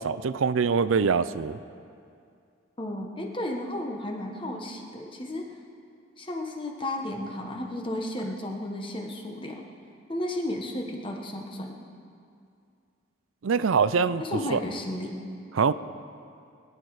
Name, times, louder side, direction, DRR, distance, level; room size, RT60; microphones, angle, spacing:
voice 1, 0.0-1.6 13.4-14.2 14.5-14.6 15.5-15.7, right 5 dB, 75° right, 15 dB, 0.5 m, -23 dB
voice 2, 2.8-5.5 6.2-9.6 10.1-11.7 14.2-15.1, left 1 dB, 25° left, 2 dB, 1.3 m, -33 dB
21.5 x 10.0 x 4.9 m, 2.4 s
head